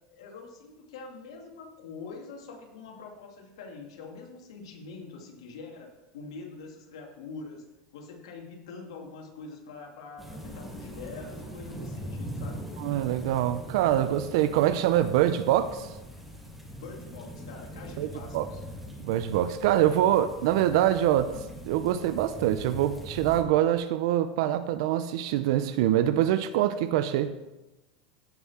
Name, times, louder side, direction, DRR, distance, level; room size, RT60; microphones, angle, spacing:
voice 1, 0.1-7.6 7.9-12.6 16.8-18.6, left 4 dB, 85° left, 1 dB, 2.4 m, -44 dB
sound 1, 10.2-23.4, equal, ahead, 1.9 m, -42 dB
voice 2, 12.8-15.9 18.0-18.1 18.3-18.5 19.0-21.3 21.6-27.3, right 12 dB, 65° right, 12 dB, 0.6 m, -24 dB
16.0 x 5.8 x 4.3 m, 1.0 s
supercardioid pair, 140°, 3 cm